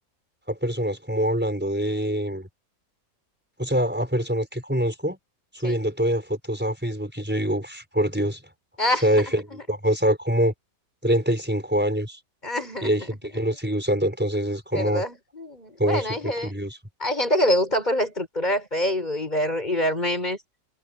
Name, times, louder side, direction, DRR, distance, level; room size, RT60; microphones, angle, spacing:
voice 1, 0.5-2.5 3.6-5.2 5.5-8.4 9.0-10.5 11.0-12.2 12.8-15.0 15.8-16.8, equal, 5° right, 5.2 m, -25 dB
voice 2, 8.8-9.6 12.4-13.1 13.3-13.4 14.7-16.5 17.0-20.4, left 1 dB, 25° left, 6.8 m, -26 dB
omnidirectional pair, 1.9 m